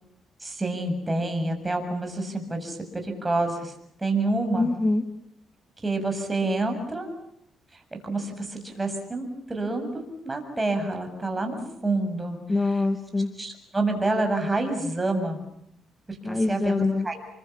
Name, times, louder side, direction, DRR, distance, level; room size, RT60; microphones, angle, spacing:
voice 1, 0.4-3.7 4.0-4.7 5.8-7.1 8.0-12.4 13.4-15.4 16.1-17.2, right 2 dB, 15° right, 4 dB, 7.5 m, -28 dB
voice 2, 4.6-5.0 12.5-13.3 16.2-17.1, left 2 dB, 20° left, 8 dB, 1.9 m, -24 dB
29.5 x 24.5 x 7.2 m, 0.76 s
cardioid pair, 90°, 0 cm